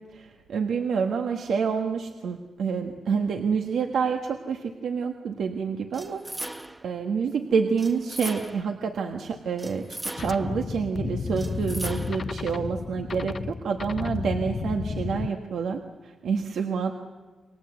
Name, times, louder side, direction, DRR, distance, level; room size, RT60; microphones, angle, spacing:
voice 1, 0.1-6.2 6.8-16.9, right 6 dB, 80° right, 3 dB, 1.5 m, -28 dB
sound 1, 5.9-6.9 7.8-8.8 9.6-10.6 11.4-12.3, right 1 dB, 15° right, 1.1 m, -38 dB
sound 2, 10.2-15.3, left 5 dB, 45° left, 0.7 m, -32 dB
28.5 x 22.5 x 8.1 m, 1.4 s
cardioid pair, 90°, 0 cm